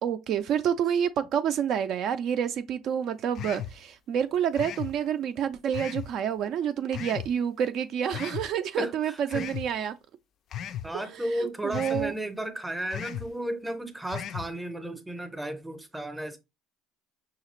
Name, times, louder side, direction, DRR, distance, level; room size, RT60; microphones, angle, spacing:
voice 1, 0.0-10.0 10.9-11.0 11.4-12.1, right 8 dB, 50° right, 0.4 m, -28 dB
sound 1, 3.3-3.8 4.5-4.9 5.7-6.1 6.9-7.3 8.1-8.5 9.3-9.7 10.5-10.9 11.7-12.1 12.9-13.3 14.1-14.5, left 10 dB, 45° left, 0.3 m, -36 dB
voice 2, 8.8-9.5 10.8-16.4, right 1 dB, 5° right, 0.6 m, -34 dB
5.6 x 2.4 x 3.1 m
cardioid pair, 135°, 0 cm